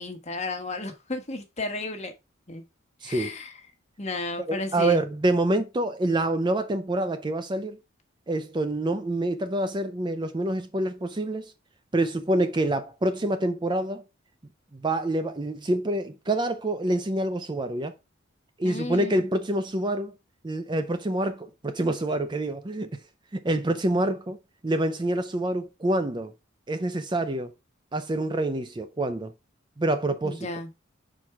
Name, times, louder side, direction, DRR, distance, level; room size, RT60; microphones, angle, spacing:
voice 1, 0.0-2.1 2.5-2.6 3.0-3.5 4.0-5.0 18.6-19.3 30.2-30.7, left 2 dB, 35° left, 1.3 m, -33 dB
voice 2, 3.0-3.3 4.5-7.8 8.3-11.5 11.9-14.0 14.7-17.9 18.6-20.1 20.4-23.0 23.3-24.4 24.6-26.3 26.7-27.5 27.9-29.3 29.8-30.5, right 1 dB, 20° right, 0.5 m, -26 dB
6.0 x 4.5 x 4.6 m
head